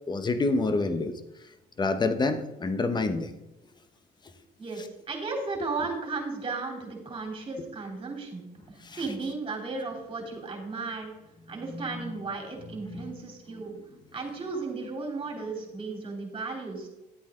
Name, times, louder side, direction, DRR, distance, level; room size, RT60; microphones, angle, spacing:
voice 1, 0.1-1.1 1.8-3.4 8.8-9.0 11.7-12.1 12.9-13.2 13.5-13.8, left 3 dB, 25° left, 9 dB, 1.0 m, -28 dB
voice 2, 4.6-11.1 11.5-13.7 14.1-16.9, right 3 dB, 30° right, 1 dB, 3.4 m, -35 dB
11.0 x 8.2 x 3.8 m, 0.98 s
cardioid pair, 110°, 17 cm